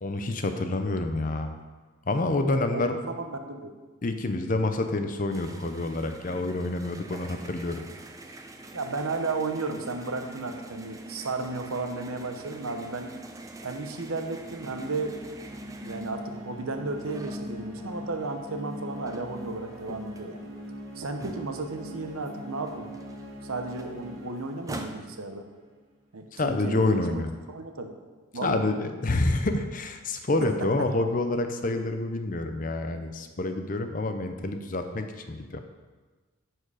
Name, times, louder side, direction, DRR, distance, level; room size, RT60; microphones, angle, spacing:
voice 1, 0.0-1.6 2.1-3.0 4.0-7.8 26.3-27.3 28.4-35.6, left 2 dB, 40° left, 7 dB, 0.6 m, -28 dB
voice 2, 2.5-3.7 8.7-13.1 13.6-15.2 15.8-20.4 21.0-22.9 23.4-25.4 26.1-27.2 27.5-27.9 28.3-28.6, right 3 dB, 85° right, 5 dB, 0.9 m, -34 dB
sound 1, 5.3-18.1 18.5-22.0 22.3-22.4 22.6-24.9, right 2 dB, 15° right, 0.4 m, -45 dB
sound 2, 14.4-25.9, equal, 65° right, 1.4 m, -42 dB
11.0 x 4.6 x 4.9 m, 1.4 s
head